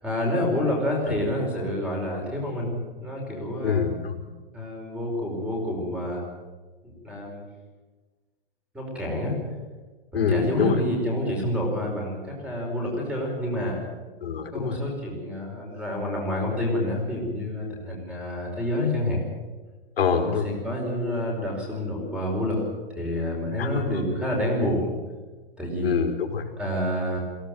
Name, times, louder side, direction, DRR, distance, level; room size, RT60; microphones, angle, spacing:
voice 1, 0.0-3.8 4.5-6.2 7.0-7.4 8.7-9.3 10.1-13.8 14.5-19.2 20.1-22.6 22.9-24.9 25.6-25.9 26.6-27.2, left 1 dB, 5° right, -1 dB, 5.1 m, -28 dB
voice 2, 3.6-4.2 10.1-10.8 14.2-14.8 20.0-20.5 23.6-24.0 25.8-26.4, left 6 dB, 85° left, 3 dB, 4.5 m, -25 dB
23.0 x 17.5 x 7.9 m, 1.3 s
hypercardioid pair, 175°, 29 cm